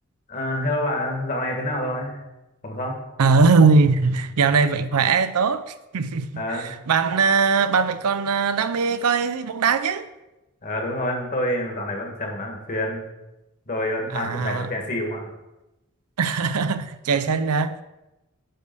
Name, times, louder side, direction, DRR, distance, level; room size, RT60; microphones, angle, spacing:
voice 1, 0.3-2.2 2.6-3.0 6.4-6.7 10.6-13.1 13.7-15.3, left 1 dB, 40° left, 1.6 m, -27 dB
voice 2, 3.2-10.1 14.1-14.7 16.2-17.8, right 4 dB, 90° right, 0.5 m, -20 dB
9.8 x 3.4 x 6.7 m
head